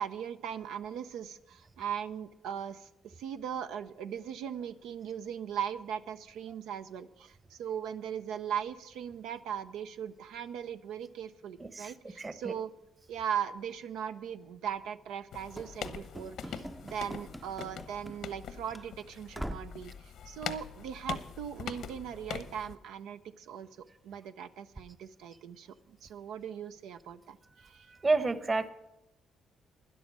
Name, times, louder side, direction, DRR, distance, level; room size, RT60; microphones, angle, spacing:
voice 1, 0.0-2.9 3.2-12.7 13.1-25.7 26.0-27.4 27.6-27.9, right 8 dB, 90° right, 9 dB, 0.5 m, -39 dB
voice 2, 11.6-12.5 27.9-28.7, right 3 dB, 30° right, 14 dB, 1.0 m, -31 dB
sound 1, 15.3-22.8, left 8 dB, 75° left, 1.0 m, -43 dB
Run / Slam, 15.6-18.4 18.7-18.9 19.3-19.8, equal, 5° right, 0.5 m, -43 dB
12.5 x 10.5 x 6.2 m, 0.92 s
cardioid pair, 90°, 0 cm